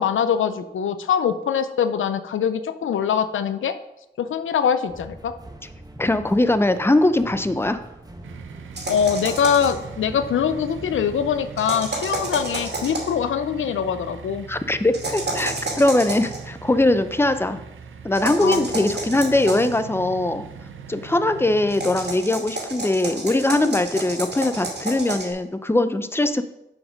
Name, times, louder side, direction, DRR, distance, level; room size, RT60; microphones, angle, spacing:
voice 1, 0.0-3.8 4.2-5.3 8.9-14.4 18.4-18.7, left 7 dB, 85° left, 11 dB, 0.5 m, -23 dB
sound 1, 4.9-11.5, right 2 dB, 20° right, 1.1 m, -42 dB
voice 2, 6.0-7.8 14.5-17.6 18.0-20.4 20.9-26.4, left 2 dB, 10° left, 11 dB, 0.6 m, -21 dB
sound 2, 8.2-22.1, right 6 dB, 85° right, 0.6 m, -40 dB
sound 3, 8.8-9.8 11.6-13.2 14.9-16.4 18.1-19.8 21.7-25.3, right 2 dB, 55° right, 2.5 m, -30 dB
7.0 x 5.1 x 5.2 m, 0.88 s
cardioid pair, 40°, 20 cm